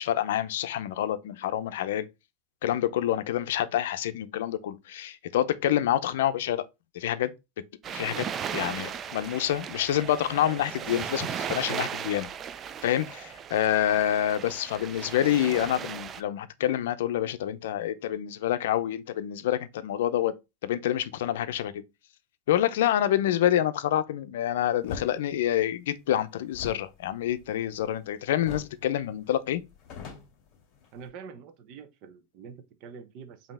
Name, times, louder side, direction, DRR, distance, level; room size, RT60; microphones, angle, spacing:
voice 1, 0.0-2.1 2.6-6.6 6.9-7.3 7.9-8.3 8.5-12.3 12.8-20.3 20.6-21.8 22.5-29.6, left 11 dB, 80° left, 0.5 m, -27 dB
sound 1, 7.8-16.2, right 8 dB, 25° right, 0.3 m, -36 dB
sound 2, 24.8-25.1 26.5-28.1 28.4-28.8 29.1-29.2 29.5-31.1, left 6 dB, 40° left, 2.0 m, -42 dB
voice 2, 30.9-33.5, right 6 dB, 50° right, 0.8 m, -45 dB
5.2 x 2.8 x 3.4 m
supercardioid pair, 140°, 0 cm